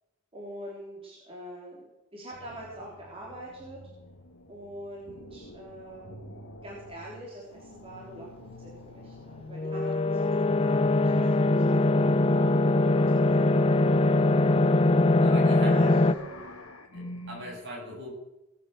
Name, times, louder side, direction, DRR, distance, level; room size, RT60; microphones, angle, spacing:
voice 1, 0.3-3.8 4.5-13.9 15.5-16.5, right 1 dB, 25° right, -4 dB, 3.7 m, -44 dB
sound 1, 2.3-9.7 10.0-17.5, left 1 dB, 75° left, 2.5 m, -47 dB
sound 2, 9.5-16.1, left 2 dB, 25° left, 0.6 m, -22 dB
voice 2, 15.2-15.9 16.9-18.1, equal, 55° right, -2 dB, 7.8 m, -41 dB
20.0 x 8.9 x 6.8 m, 0.93 s
head